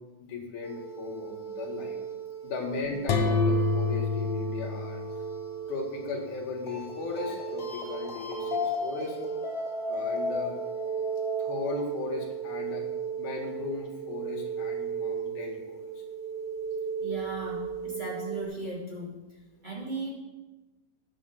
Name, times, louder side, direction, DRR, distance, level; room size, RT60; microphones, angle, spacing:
voice 1, 0.2-2.0 2.4-5.0 5.7-9.2 9.9-10.5 11.4-12.9 13.2-15.8, left 3 dB, 80° left, 1 dB, 3.4 m, -36 dB
sound 1, 0.6-18.4, right 3 dB, 20° left, 2.3 m, -35 dB
sound 2, 3.1-5.8, left 3 dB, 60° left, 1.8 m, -28 dB
voice 2, 17.0-20.1, right 2 dB, 15° right, -5 dB, 2.7 m, -37 dB
9.5 x 7.0 x 7.1 m, 1.1 s
omnidirectional pair, 3.6 m